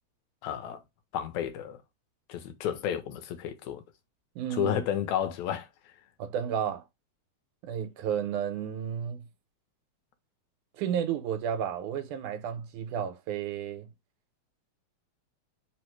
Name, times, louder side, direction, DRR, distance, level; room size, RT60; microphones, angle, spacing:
voice 1, 0.4-0.8 1.1-1.8 2.3-3.8 4.5-5.7, left 9 dB, 80° left, 1.9 m, -31 dB
voice 2, 4.4-4.8 6.2-6.8 7.6-9.3 10.7-13.9, right 8 dB, 85° right, 2.2 m, -32 dB
4.8 x 2.0 x 4.5 m
omnidirectional pair, 3.4 m